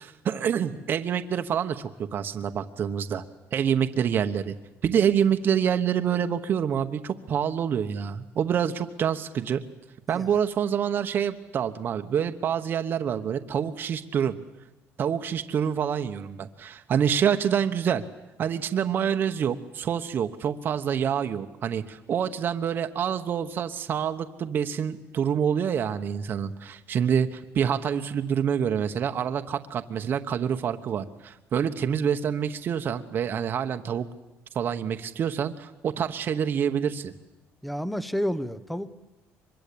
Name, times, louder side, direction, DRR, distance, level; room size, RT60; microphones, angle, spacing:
voice 1, 0.0-3.2 3.5-4.5 4.8-9.6 10.1-14.4 15.0-18.0 18.4-34.1 34.5-37.1, right 8 dB, 40° right, 7 dB, 1.1 m, -27 dB
voice 2, 37.6-38.9, equal, ahead, 15 dB, 0.8 m, -30 dB
24.5 x 22.0 x 8.6 m, 1.0 s
cardioid pair, 150°, 5 cm